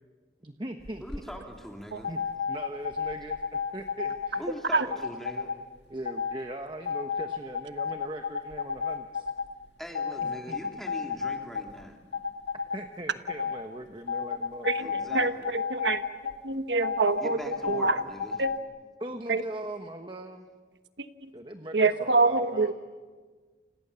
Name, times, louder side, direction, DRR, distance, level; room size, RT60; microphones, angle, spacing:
voice 1, 0.4-1.0 2.1-2.2 2.5-4.5 4.8-5.0 5.9-9.3 10.2-10.6 12.7-14.9 19.0-20.5 21.3-22.7, right 1 dB, 25° right, 5 dB, 1.2 m, -40 dB
sound 1, 0.8-1.2 2.0-4.4 4.9-5.6 6.0-6.4 6.9-9.5 9.9-11.8 12.1-12.8 13.3-13.6 14.1-16.3 16.8-18.6, left 6 dB, 90° left, 1.8 m, -32 dB
voice 2, 1.0-2.2 4.4-5.5 9.8-12.0 14.8-15.3 17.2-18.4, equal, ahead, 1 dB, 3.3 m, -41 dB
voice 3, 14.6-16.0 16.4-18.0 18.4-18.5 19.3-19.4 21.0-21.3 21.7-22.7, right 3 dB, 90° right, 9 dB, 1.3 m, -26 dB
29.5 x 27.0 x 7.0 m, 1.5 s
head